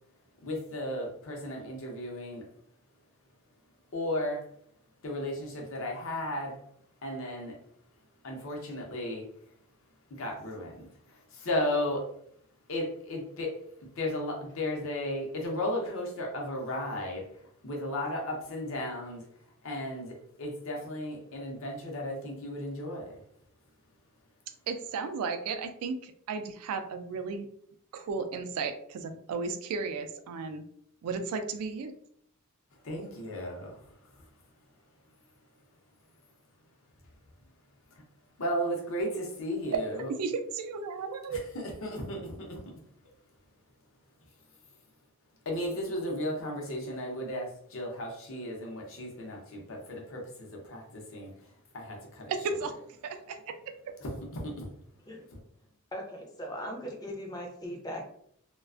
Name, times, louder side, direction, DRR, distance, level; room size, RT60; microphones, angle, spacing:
voice 1, 0.4-2.5 3.9-4.5 5.0-6.6 7.0-7.6 8.2-9.3 10.1-12.1 12.7-19.3 19.6-23.2 32.8-34.2 38.4-40.1 41.3-42.6 45.5-52.3 54.0-54.7 55.3-55.4, left 1 dB, 60° left, 0 dB, 0.6 m, -35 dB
voice 2, 24.7-27.5 27.9-30.6 31.0-31.9 40.1-41.4 52.3-52.8 53.0-53.7, right 4 dB, 85° right, 9 dB, 0.3 m, -34 dB
voice 3, 55.9-58.1, equal, 20° left, 1 dB, 0.4 m, -39 dB
2.3 x 2.2 x 2.4 m, 0.67 s
head